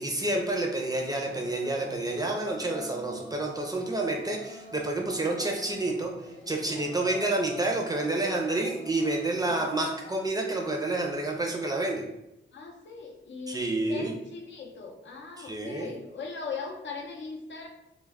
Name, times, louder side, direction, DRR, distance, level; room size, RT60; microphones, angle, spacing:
voice 1, 0.0-6.1 6.5-12.1 13.5-14.1 15.4-15.9, right 2 dB, 20° right, 0 dB, 0.4 m, -29 dB
sound 1, 1.1-10.3, equal, 85° right, 0.7 m, -47 dB
voice 2, 12.5-17.7, left 4 dB, 70° left, 2 dB, 0.5 m, -39 dB
2.2 x 2.0 x 3.3 m, 0.89 s
wide cardioid pair, 100°, 20 cm